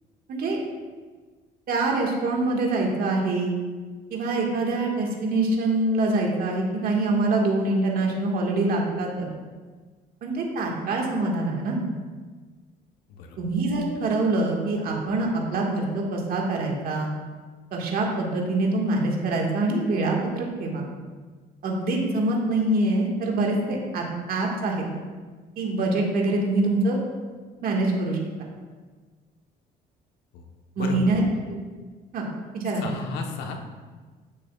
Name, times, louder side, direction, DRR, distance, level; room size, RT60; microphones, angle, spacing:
voice 1, 0.3-0.6 1.7-3.5 4.1-9.3 10.2-11.8 13.4-17.1 17.7-20.8 21.6-24.9 25.6-27.0 27.6-28.2 30.8-31.6 32.1-32.3 32.5-32.9, right 2 dB, 60° right, -1 dB, 1.7 m, -25 dB
voice 2, 30.8-31.1 32.8-33.6, left 4 dB, 85° left, 3 dB, 1.1 m, -33 dB
10.5 x 7.5 x 2.4 m, 1.4 s
cardioid pair, 110°, 17 cm